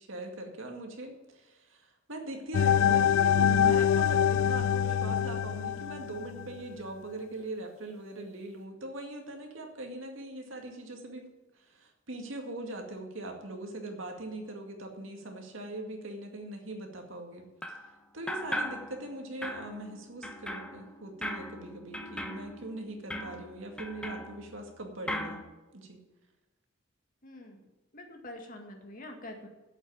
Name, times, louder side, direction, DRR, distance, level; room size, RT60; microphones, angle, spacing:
voice 1, 0.0-11.3 11.5-17.5 18.1-25.4 25.7-26.0, right 2 dB, 80° right, 3 dB, 2.2 m, -41 dB
sound 1, 2.5-6.5, left 8 dB, 90° left, 0.3 m, -25 dB
sound 2, 17.6-17.9 18.3-19.1 19.4-24.8 25.1-25.4, equal, 5° left, 0.9 m, -39 dB
voice 2, 27.2-27.7 27.9-29.5, left 1 dB, 45° left, 3 dB, 2.0 m, -45 dB
8.3 x 8.1 x 8.7 m, 1.1 s
head